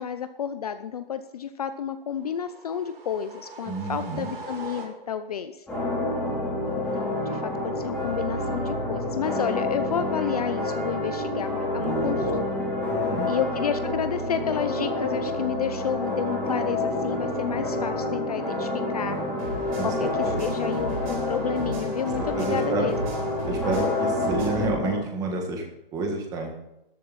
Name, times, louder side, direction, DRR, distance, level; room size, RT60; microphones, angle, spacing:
voice 1, 0.0-5.6 6.9-12.5 13.3-19.2 19.8-23.0, left 8 dB, 40° left, 10 dB, 0.6 m, -31 dB
sound 1, 2.2-5.4, right 4 dB, 80° right, 5.3 m, -42 dB
voice 2, 3.7-4.3 11.8-12.4 12.9-13.3 19.8-20.4 22.0-22.9 23.4-25.6 25.9-26.5, right 3 dB, 10° right, 2 dB, 1.8 m, -29 dB
sound 2, 5.7-25.0, left 2 dB, 5° left, 3.1 m, -28 dB
sound 3, 19.4-24.7, right 2 dB, 40° right, 4.1 m, -37 dB
14.0 x 11.5 x 4.2 m, 0.88 s
hypercardioid pair, 165°, 29 cm